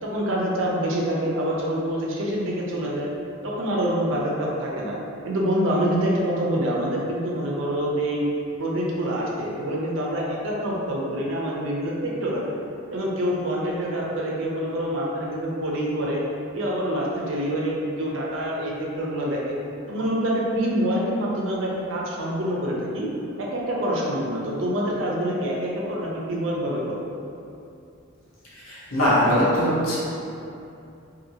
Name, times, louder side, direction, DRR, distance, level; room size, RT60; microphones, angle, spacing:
voice 1, 0.0-3.1 3.4-4.9 5.2-8.2 8.6-12.4 12.9-16.2 16.5-19.6 19.9-23.1 23.5-27.0, equal, 65° right, -4 dB, 0.5 m, -26 dB
voice 2, 28.7-30.0, equal, 90° left, -8 dB, 0.9 m, -21 dB
2.7 x 2.6 x 2.7 m, 2.7 s
head